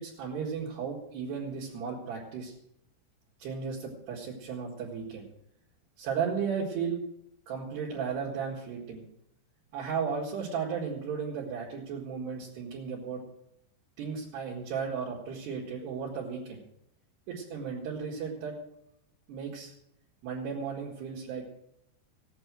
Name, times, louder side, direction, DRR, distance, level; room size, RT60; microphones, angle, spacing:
voice 1, 0.0-2.5 3.4-5.2 6.0-7.0 7.5-9.1 9.7-13.2 14.0-16.6 17.3-18.6 19.3-19.7 20.2-21.5, right 6 dB, 65° right, -5 dB, 3.8 m, -35 dB
16.5 x 9.4 x 6.2 m, 0.76 s
omnidirectional pair, 5.5 m